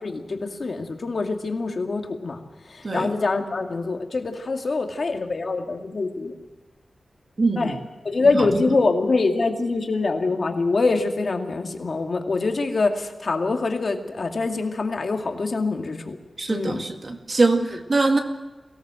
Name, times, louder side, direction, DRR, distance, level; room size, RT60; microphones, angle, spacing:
voice 1, 0.0-2.4 2.7-6.3 7.6-7.7 8.0-16.2 16.5-16.8, left 3 dB, 50° left, 4 dB, 2.3 m, -24 dB
voice 2, 7.4-7.8 8.3-8.6 16.4-18.2, right 3 dB, 40° right, 5 dB, 2.1 m, -23 dB
23.0 x 17.5 x 7.7 m, 1.2 s
wide cardioid pair, 145°, 0 cm